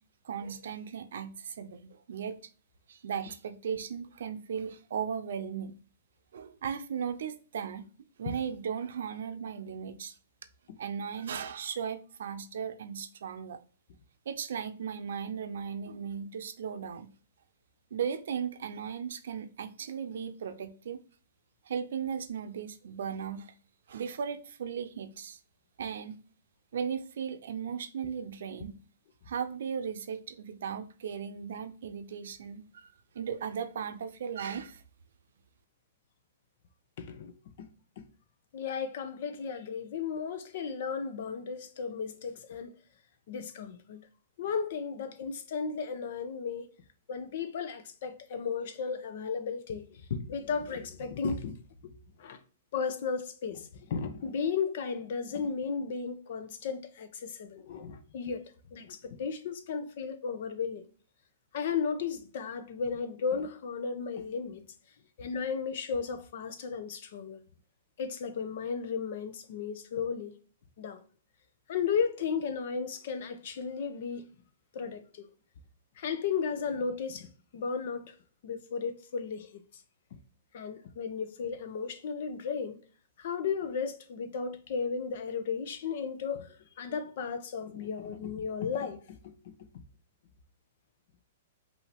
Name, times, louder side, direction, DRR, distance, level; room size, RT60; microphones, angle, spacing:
voice 1, 0.2-2.4 2.9-5.8 6.3-7.9 8.2-10.2 10.8-13.6 14.3-17.1 17.9-21.0 21.7-23.5 23.9-25.4 25.8-26.2 26.7-28.8 29.3-34.8, right 7 dB, 75° right, 0.6 m, -37 dB
voice 2, 37.0-37.7 38.0-38.1 38.5-42.7 43.3-44.1 44.4-46.7 47.1-51.9 52.2-52.4 52.7-58.4 58.7-60.9 61.5-64.6 65.2-67.4 68.0-70.4 70.8-71.0 71.7-74.3 74.7-75.3 76.0-78.1 78.4-79.6 80.5-82.8 83.2-89.5, left 6 dB, 60° left, 0.8 m, -35 dB
5.5 x 2.8 x 3.5 m
hypercardioid pair, 145°, 0 cm